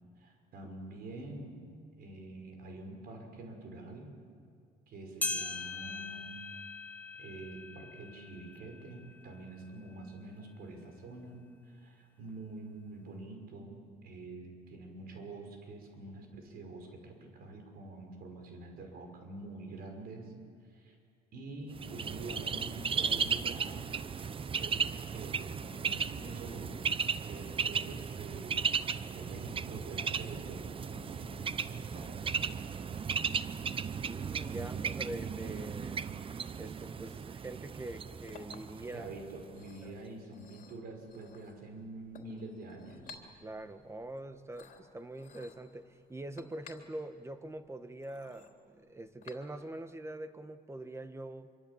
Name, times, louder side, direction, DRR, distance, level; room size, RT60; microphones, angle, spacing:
voice 1, 0.2-1.6 2.0-4.2 4.9-6.4 7.2-20.3 20.7-21.0 21.3-23.9 24.6-26.8 27.2-32.5 38.9-43.2, right 2 dB, 65° right, 4 dB, 5.8 m, -46 dB
sound 1, 5.2-9.9 10.4-10.5 11.3-11.4 12.3-12.4, left 3 dB, 10° left, 2.1 m, -41 dB
Bird, 21.7-39.5, right 6 dB, 30° right, 0.8 m, -36 dB
voice 2, 33.9-36.0 36.6-39.0 39.8-40.0 43.4-51.5, right 1 dB, 15° right, 10 dB, 1.4 m, -44 dB
Chink clink, 37.8-49.9, left 5 dB, 50° left, 3.6 m, -57 dB
26.0 x 24.5 x 8.6 m, 2.2 s
cardioid pair, 110°, 17 cm